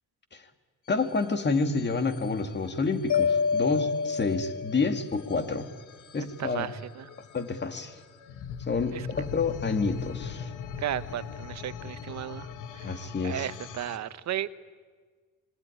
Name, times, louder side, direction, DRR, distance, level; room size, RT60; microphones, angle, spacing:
sound 1, 0.9-14.0, left 7 dB, 90° left, 1.6 m, -42 dB
voice 1, 0.9-5.7 6.1-6.7 7.3-8.0 8.7-10.5 12.8-13.5, left 4 dB, 35° left, 8 dB, 2.4 m, -29 dB
Mallet percussion, 3.1-5.2, left 6 dB, 65° left, 1.5 m, -27 dB
voice 2, 6.2-7.1 8.9-9.1 10.8-12.5 12.7-12.9 13.2-14.5, right 11 dB, 65° right, 14 dB, 1.0 m, -35 dB
25.5 x 23.0 x 10.0 m, 1.5 s
cardioid pair, 90°, 30 cm